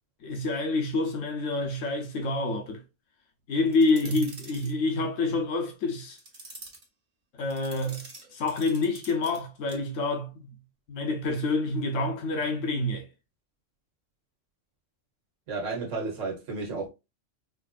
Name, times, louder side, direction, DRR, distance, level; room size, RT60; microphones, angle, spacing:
voice 1, 0.2-2.8 3.5-6.2 7.3-8.1 8.3-10.6 10.9-13.1, left 2 dB, 80° left, 1.2 m, -27 dB
sound 1, 3.7-4.7 6.1-6.8 7.5-9.4 9.7-9.9, right 2 dB, 40° right, 1.3 m, -46 dB
voice 2, 15.5-16.9, right 3 dB, 85° right, 1.4 m, -32 dB
4.8 x 2.5 x 2.3 m
omnidirectional pair, 1.3 m